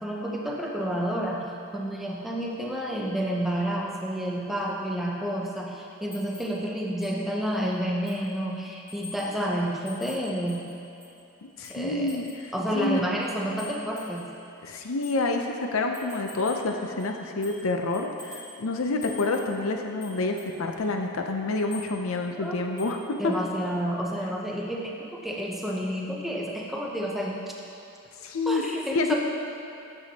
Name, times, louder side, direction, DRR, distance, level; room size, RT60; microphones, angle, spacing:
voice 1, 0.0-10.7 11.7-12.2 12.5-14.3 22.4-22.6 23.2-27.5 28.5-29.2, equal, ahead, -2 dB, 0.6 m, -30 dB
sound 1, 6.1-6.6 7.0-7.2 7.5-7.6 8.1-8.3 8.9-9.4 9.9-11.2 11.6-12.5 13.2-14.4 15.0-15.2 15.9-16.7 17.0-17.7 17.9-18.6 19.0-19.6 20.0-20.6 21.5-21.9 22.8-23.0 23.3-23.4, left 4 dB, 15° left, 1.6 m, -46 dB
voice 2, 11.6-12.3 12.7-13.0 14.6-23.3 28.2-28.6 28.9-29.2, left 2 dB, 75° left, 4 dB, 0.6 m, -28 dB
8.9 x 7.0 x 2.8 m, 2.9 s
head